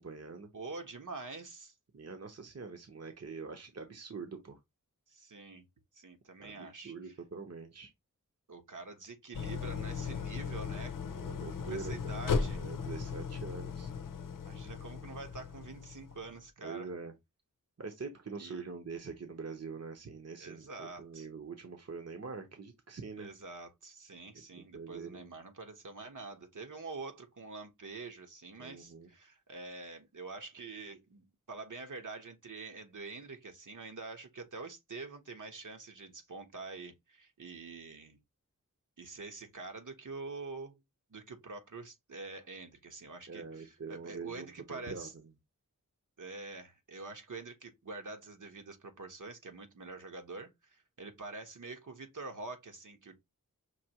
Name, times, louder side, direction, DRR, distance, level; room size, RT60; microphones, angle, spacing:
voice 1, 0.0-0.5 1.9-4.6 6.4-7.9 11.2-12.2 12.5-13.9 16.6-17.1 17.8-23.3 24.3-25.3 28.6-29.1 43.3-45.1, right 4 dB, 50° right, 1.0 m, -44 dB
voice 2, 0.5-1.7 5.1-5.7 5.9-7.1 8.5-11.0 11.5-12.6 13.3-13.4 14.4-16.9 18.4-18.6 20.4-21.3 23.2-38.2 39.0-40.8 41.1-45.1 46.2-53.2, right 3 dB, 70° right, 1.2 m, -46 dB
Idling, 9.3-16.4, left 5 dB, 80° left, 0.6 m, -37 dB
5.9 x 2.9 x 2.9 m
wide cardioid pair, 65°, 32 cm